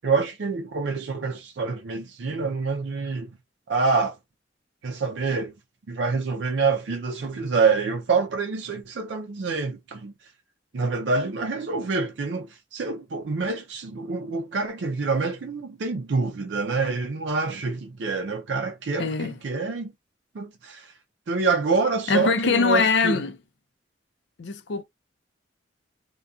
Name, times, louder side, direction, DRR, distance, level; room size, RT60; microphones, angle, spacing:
voice 1, 0.0-3.3 3.7-4.2 4.8-5.5 5.9-10.1 10.7-19.9 20.3-20.9 21.3-23.2, right 4 dB, 70° right, 0.4 m, -26 dB
voice 2, 19.0-19.4 22.1-23.4 24.4-24.8, left 4 dB, 70° left, 0.5 m, -23 dB
2.3 x 2.2 x 2.5 m
head